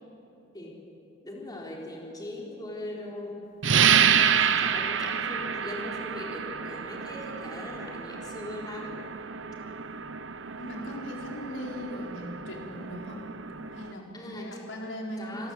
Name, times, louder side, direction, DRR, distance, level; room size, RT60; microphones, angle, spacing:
voice 1, 1.2-3.5 4.4-9.0 14.1-14.5 15.2-15.5, left 1 dB, 20° left, -2 dB, 4.0 m, -40 dB
sound 1, 3.6-13.9, right 7 dB, 75° right, 1.0 m, -28 dB
voice 2, 10.6-13.2 13.7-15.5, equal, 80° left, -1 dB, 4.6 m, -39 dB
27.0 x 21.5 x 8.1 m, 3.0 s
head